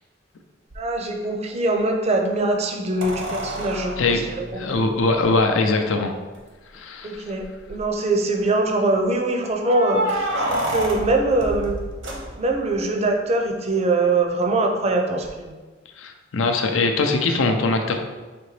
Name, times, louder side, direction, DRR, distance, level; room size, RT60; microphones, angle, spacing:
sound 1, 0.7-0.8 3.0-5.4 6.4-6.5 6.7-6.8 7.4-7.9 9.6-12.7 15.2-15.3, right 1 dB, 70° right, 0.8 m, -29 dB
voice 1, 0.8-4.8 7.0-11.8 12.4-15.5, right 2 dB, 35° right, 3 dB, 0.5 m, -23 dB
voice 2, 4.5-6.1 6.7-7.3 16.0-18.0, left 3 dB, 90° left, 5 dB, 0.5 m, -21 dB
5.1 x 2.9 x 3.2 m, 1.3 s
head